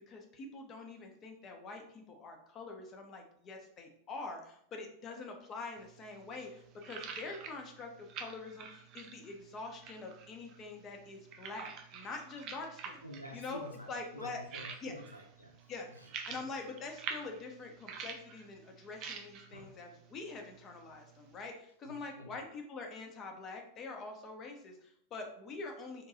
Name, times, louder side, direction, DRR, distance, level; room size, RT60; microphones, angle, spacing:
voice 1, 0.0-13.0 13.3-13.6 13.9-14.4 14.8-14.9 15.7-15.9 16.3-26.1, left 3 dB, 30° left, 3 dB, 0.5 m, -45 dB
sound 1, 5.8-21.5, right 6 dB, 40° right, 0.3 m, -48 dB
voice 2, 13.0-15.6 16.0-16.1 19.5-19.7 21.8-22.4, equal, 90° left, 1 dB, 0.4 m, -49 dB
2.7 x 2.2 x 2.6 m, 0.67 s
figure-of-eight pair, 90°, 0 cm